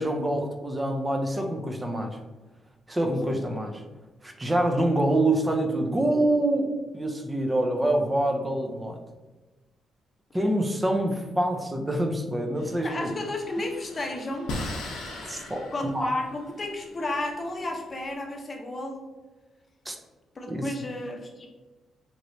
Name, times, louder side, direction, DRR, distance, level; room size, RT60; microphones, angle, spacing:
voice 1, 0.0-2.2 2.9-3.8 4.2-6.7 6.9-9.0 10.3-13.1 15.3-15.7 15.9-16.1 19.9-20.0 20.5-20.7, right 1 dB, 20° right, 4 dB, 0.5 m, -26 dB
voice 2, 10.3-10.6 10.9-11.1 12.8-14.5 15.7-19.1 20.3-21.5, left 1 dB, 35° left, 2 dB, 0.7 m, -33 dB
sound 1, 12.6-18.1, left 1 dB, 85° left, 0.6 m, -39 dB
3.1 x 2.9 x 2.6 m, 1.2 s
cardioid pair, 90°, 0 cm